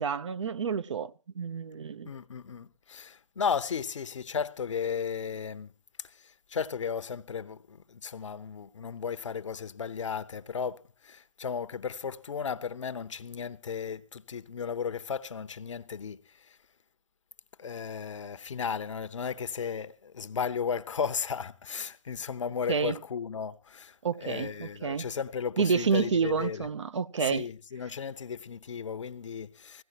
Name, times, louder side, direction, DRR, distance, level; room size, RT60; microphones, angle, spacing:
voice 1, 0.0-2.1 22.7-23.0 24.0-25.1 25.6-27.5, right 6 dB, 55° right, 0.7 m, -29 dB
voice 2, 2.1-5.7 6.0-16.6 17.6-26.7 27.2-29.8, left 6 dB, 60° left, 0.8 m, -35 dB
20.0 x 16.5 x 2.8 m
figure-of-eight pair, 145°, 18 cm